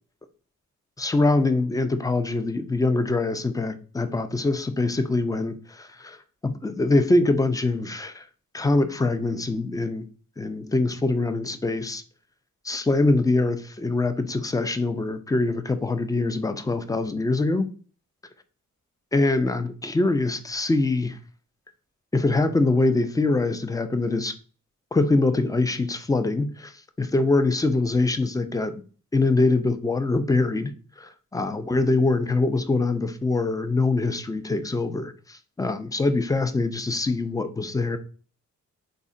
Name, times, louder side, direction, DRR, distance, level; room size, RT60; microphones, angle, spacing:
voice 1, 1.0-6.2 6.4-8.2 8.5-10.1 10.4-12.0 12.6-17.7 19.1-21.2 22.1-24.3 24.9-26.7 27.0-28.8 29.1-38.0, left 2 dB, 10° left, 0.4 m, -24 dB
3.6 x 2.1 x 2.5 m
cardioid pair, 55°, 33 cm